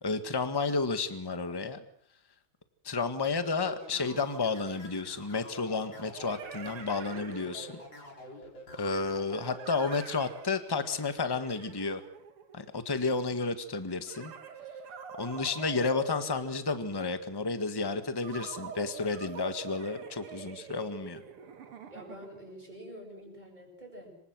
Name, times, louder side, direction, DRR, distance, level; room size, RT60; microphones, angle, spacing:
voice 1, 0.0-1.8 2.8-7.8 8.7-12.0 12.5-14.3 15.2-21.2, left 4 dB, 10° left, 9 dB, 1.4 m, -31 dB
sound 1, 3.6-10.3, left 1 dB, 55° left, 5.7 m, -47 dB
sound 2, 4.2-4.3 5.7-8.1 9.3-12.8 14.0-17.1 18.2-22.5, right 7 dB, 80° right, 2.6 m, -46 dB
voice 2, 21.9-24.1, equal, 20° right, 2 dB, 7.7 m, -47 dB
27.0 x 24.5 x 6.3 m, 0.65 s
omnidirectional pair, 2.4 m